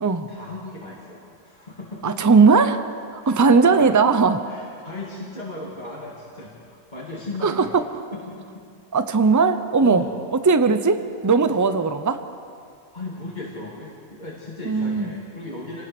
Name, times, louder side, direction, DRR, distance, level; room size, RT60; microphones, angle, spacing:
voice 1, 0.3-2.1 3.2-3.9 4.5-7.8 8.1-8.6 9.8-10.2 10.7-10.8 11.5-11.6 12.9-15.8, left 2 dB, 30° left, -4 dB, 2.5 m, -36 dB
voice 2, 2.0-2.8 3.1-4.5 7.4-7.8 8.9-10.0 10.4-12.2 14.6-15.1, right 4 dB, 15° right, 9 dB, 0.6 m, -18 dB
27.0 x 19.5 x 6.2 m, 2.3 s
omnidirectional pair, 1.5 m